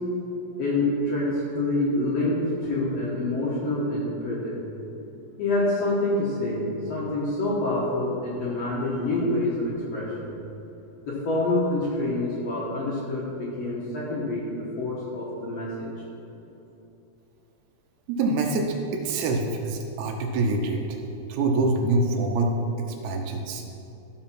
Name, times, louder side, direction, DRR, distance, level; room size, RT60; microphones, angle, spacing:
voice 1, 0.6-4.6 5.4-10.3 11.0-15.9, left 2 dB, 85° left, -7 dB, 1.4 m, -27 dB
voice 2, 18.1-20.8 21.3-23.6, right 2 dB, 90° right, 1 dB, 3.0 m, -25 dB
12.5 x 4.8 x 5.9 m, 2.9 s
omnidirectional pair, 5.0 m